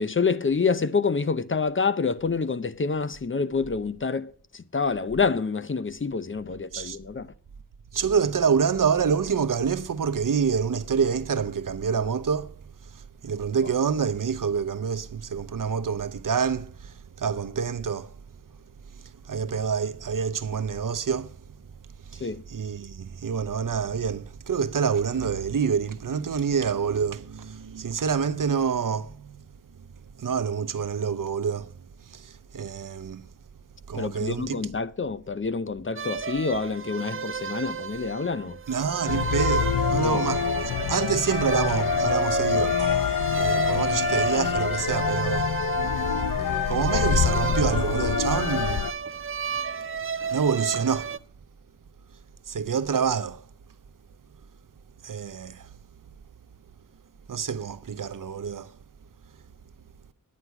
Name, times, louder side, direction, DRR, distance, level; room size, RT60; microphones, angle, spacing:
voice 1, 0.0-7.3 22.2-22.4 33.9-38.6 40.0-40.2, left 4 dB, 35° left, 0.7 m, -27 dB
voice 2, 7.9-12.5 12.8-18.1 18.9-21.4 22.0-29.4 29.8-29.9 30.1-33.3 33.9-34.6 38.7-40.5 40.9-45.5 46.7-48.9 50.3-51.1 52.5-53.4 55.0-55.7 57.3-58.8, right 6 dB, 70° right, 0.8 m, -27 dB
sound 1, 36.0-51.2, right 6 dB, 40° right, 0.4 m, -32 dB
sound 2, 39.1-48.9, left 6 dB, 75° left, 0.6 m, -25 dB
sound 3, 42.8-46.5, equal, 20° left, 2.9 m, -47 dB
9.8 x 9.5 x 5.9 m
wide cardioid pair, 85°, 34 cm